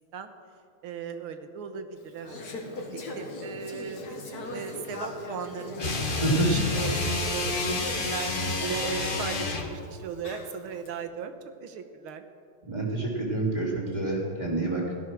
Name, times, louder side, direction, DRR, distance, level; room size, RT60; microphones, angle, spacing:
voice 1, 0.8-2.4 2.9-5.7 6.3-12.2, right 6 dB, 75° right, 8 dB, 1.9 m, -37 dB
Conversation / Chatter, 2.0-10.9, left 2 dB, 50° left, 2.0 m, -40 dB
sound 1, 5.8-9.8, left 3 dB, 30° left, 1.3 m, -29 dB
voice 2, 6.2-6.6 12.7-14.9, right 2 dB, 20° right, -4 dB, 3.4 m, -27 dB
16.0 x 13.5 x 6.3 m, 2.4 s
omnidirectional pair, 2.4 m